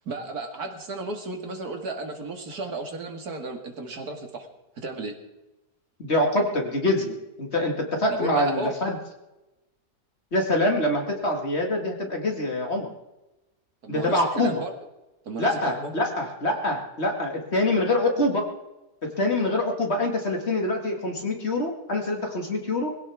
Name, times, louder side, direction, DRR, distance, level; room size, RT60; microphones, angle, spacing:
voice 1, 0.1-4.5 4.8-5.2 8.1-8.7 13.8-14.7 15.3-15.9, right 3 dB, 70° right, 3 dB, 2.4 m, -33 dB
voice 2, 6.0-9.0 10.3-12.9 13.9-14.6 15.4-18.5 19.0-22.9, left 1 dB, 40° left, 1 dB, 2.3 m, -25 dB
21.5 x 16.5 x 3.5 m, 1.0 s
omnidirectional pair, 1.7 m